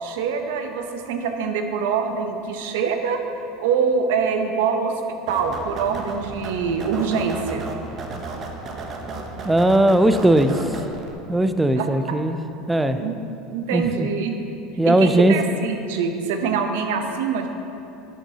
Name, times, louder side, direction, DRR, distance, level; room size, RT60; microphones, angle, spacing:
voice 1, 0.0-3.2 3.6-4.9 5.3-7.7 11.8-11.9 13.0-13.1 13.5-14.3 14.8-17.5, right 6 dB, 80° right, 5 dB, 0.7 m, -24 dB
sound 1, 5.3-11.1, right 3 dB, 40° right, 0.9 m, -34 dB
voice 2, 9.4-10.8 11.3-12.4 12.7-13.0 13.7-14.1 14.8-15.3, right 1 dB, 10° right, 9 dB, 0.4 m, -18 dB
10.5 x 7.2 x 2.8 m, 2.9 s
supercardioid pair, 120°, 0 cm